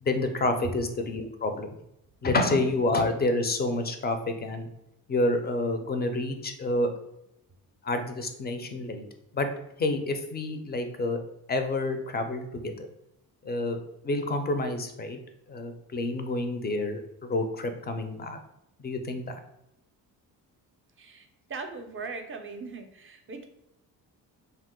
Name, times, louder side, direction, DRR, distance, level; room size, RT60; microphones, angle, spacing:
voice 1, 0.0-1.7 2.2-4.7 5.1-6.9 7.8-9.0 9.3-9.5 9.8-11.2 11.5-12.9 13.4-13.8 14.0-15.2 15.5-18.4 18.8-19.4, left 2 dB, 25° left, 7 dB, 0.4 m, -28 dB
voice 2, 21.0-23.5, right 4 dB, 35° right, 6 dB, 0.5 m, -40 dB
2.8 x 2.0 x 3.7 m, 0.83 s
cardioid pair, 85°, 39 cm